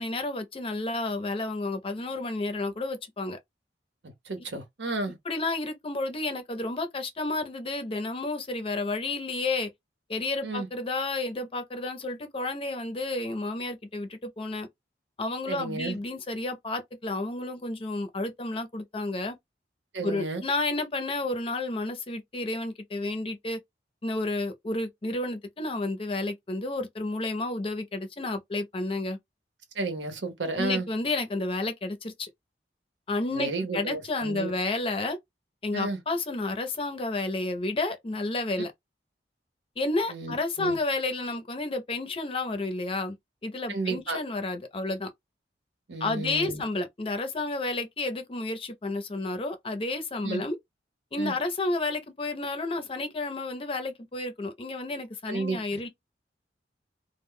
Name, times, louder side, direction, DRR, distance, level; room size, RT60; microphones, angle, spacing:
voice 1, 0.0-3.4 5.3-9.7 10.1-14.7 15.2-19.4 20.0-23.6 24.0-29.2 30.6-32.3 33.1-35.2 35.6-38.7 39.8-43.2 43.4-45.1 46.0-50.6 51.1-55.9, left 2 dB, 30° left, 0.5 m, -31 dB
voice 2, 4.0-5.2 10.4-10.7 15.5-16.0 19.9-20.4 29.7-30.9 33.3-34.5 35.7-36.0 40.1-40.8 43.7-44.2 45.9-46.6 50.2-50.4 51.2-51.3 55.3-55.6, right 3 dB, 85° right, 0.8 m, -32 dB
2.1 x 2.1 x 3.6 m
head